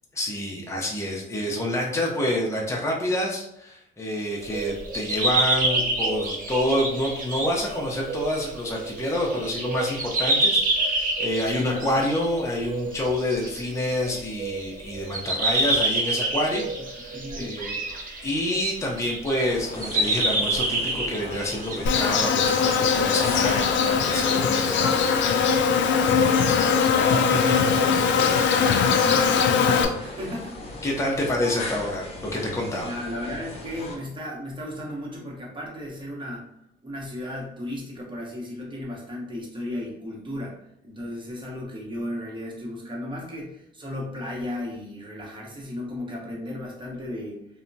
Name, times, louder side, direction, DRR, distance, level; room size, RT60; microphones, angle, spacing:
voice 1, 0.1-17.8 18.2-25.6 27.3-27.7 30.8-32.9, left 1 dB, 15° left, -2 dB, 0.6 m, -28 dB
sound 1, 4.4-19.6 19.8-21.8 22.3-24.3, right 2 dB, 45° right, 0.6 m, -28 dB
voice 2, 11.6-12.0 17.1-17.6 24.1-24.3 28.5-30.9 32.8-36.5 36.8-47.4, left 1 dB, 25° right, -3 dB, 1.0 m, -35 dB
sound 2, 19.4-34.0, left 2 dB, 30° left, 1.0 m, -37 dB
Insect, 21.9-29.9, left 6 dB, 70° left, 0.4 m, -21 dB
2.8 x 2.2 x 2.6 m, 0.77 s
cardioid pair, 90°, 20 cm